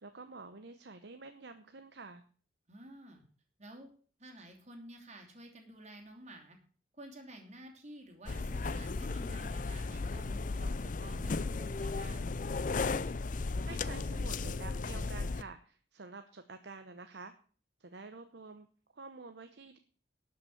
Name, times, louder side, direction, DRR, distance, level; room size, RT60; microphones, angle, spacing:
voice 1, 0.0-2.2 13.6-17.3 17.8-18.7 18.9-19.8, right 3 dB, 65° right, 8 dB, 0.9 m, -49 dB
voice 2, 2.7-3.2 3.6-3.9 4.2-6.6 6.9-12.3, right 1 dB, 40° right, 2 dB, 2.9 m, -51 dB
sound 1, 8.3-15.4, left 3 dB, 45° left, 0.5 m, -35 dB
12.0 x 5.7 x 8.5 m, 0.42 s
head